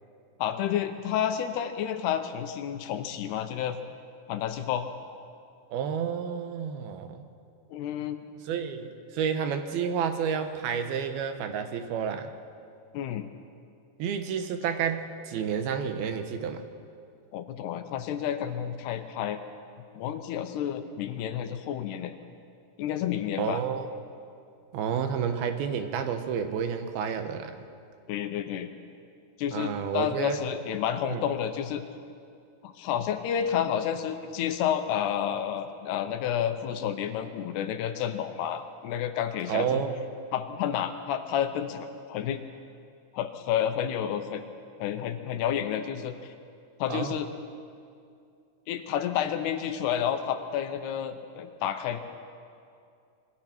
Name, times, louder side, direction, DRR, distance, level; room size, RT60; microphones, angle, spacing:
voice 1, 0.4-3.8 4.3-4.9 7.7-8.2 12.9-13.3 17.3-19.4 20.0-22.1 22.8-23.6 28.1-28.7 29.4-31.8 32.6-39.8 40.3-42.4 43.1-44.4 44.8-46.3 46.8-47.3 48.7-52.0, left 9 dB, 90° left, 8 dB, 3.1 m, -30 dB
voice 2, 5.7-7.2 8.5-12.3 14.0-16.6 23.4-23.9 24.7-27.6 29.5-30.4 31.1-31.2 39.5-39.9 46.9-47.2, right 7 dB, 75° right, 7 dB, 2.9 m, -30 dB
26.5 x 22.0 x 4.5 m, 2.4 s
omnidirectional pair, 4.6 m